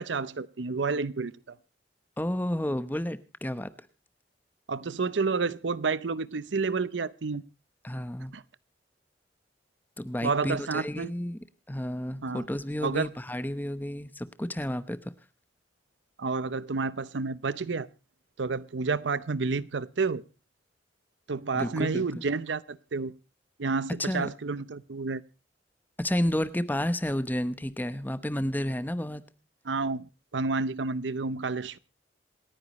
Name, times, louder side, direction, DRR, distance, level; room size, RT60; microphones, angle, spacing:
voice 1, 0.0-1.5 4.7-7.4 8.3-8.4 10.2-11.1 12.2-12.5 12.8-13.1 16.2-17.9 18.4-20.2 21.3-23.1 23.6-25.2 29.7-30.1 30.3-31.8, right 4 dB, 80° right, 0.7 m, -30 dB
voice 2, 2.2-3.7 7.8-8.3 10.0-11.4 11.7-15.1 21.5-22.2 24.0-24.3 26.0-29.2, left 1 dB, 10° left, 0.9 m, -31 dB
27.5 x 9.8 x 3.0 m
head